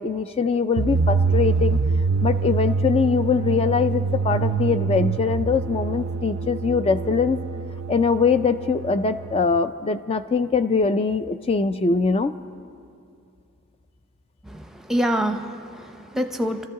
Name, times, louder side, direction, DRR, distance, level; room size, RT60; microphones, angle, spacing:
voice 1, 0.0-1.8 2.2-7.4 7.9-12.3, left 5 dB, 25° left, 10 dB, 0.3 m, -22 dB
sound 1, 0.8-9.6, right 4 dB, 65° right, 0.4 m, -25 dB
voice 2, 14.5-16.7, equal, ahead, 5 dB, 0.7 m, -26 dB
26.5 x 13.5 x 3.7 m, 2.4 s
head